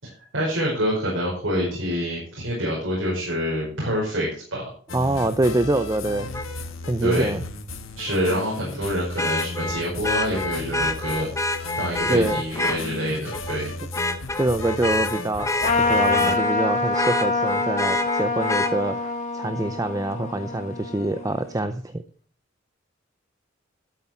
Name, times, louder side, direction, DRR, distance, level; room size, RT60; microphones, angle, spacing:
voice 1, 0.0-4.7 7.0-7.3 8.0-13.7, equal, 70° right, -4 dB, 5.2 m, -26 dB
sound 1, 4.9-16.4, left 2 dB, 90° left, 1.5 m, -35 dB
voice 2, 4.9-6.3 6.8-7.4 12.1-12.4 14.4-22.0, right 2 dB, 15° right, 10 dB, 0.6 m, -25 dB
Vehicle horn car horn honking, 6.3-6.5 9.2-12.8 13.3-13.6 13.9-16.6 16.9-18.7 20.5-20.6, left 2 dB, 15° left, 1.0 m, -27 dB
Trumpet, 15.6-21.4, left 3 dB, 35° left, 2.5 m, -25 dB
12.5 x 8.3 x 4.5 m, 0.43 s
head